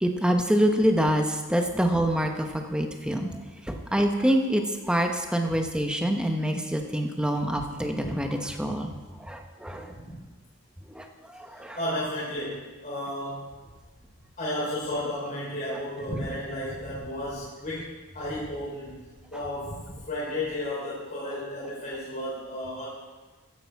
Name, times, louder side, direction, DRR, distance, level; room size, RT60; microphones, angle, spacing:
voice 1, 0.0-3.3 3.6-9.9 10.9-11.8 15.7-15.8, equal, 5° right, 4 dB, 1.0 m, -26 dB
voice 2, 9.7-10.2 11.7-13.6 14.4-19.0 19.3-22.9, left 1 dB, 40° left, -8 dB, 3.8 m, -33 dB
15.0 x 10.0 x 4.7 m, 1.3 s
head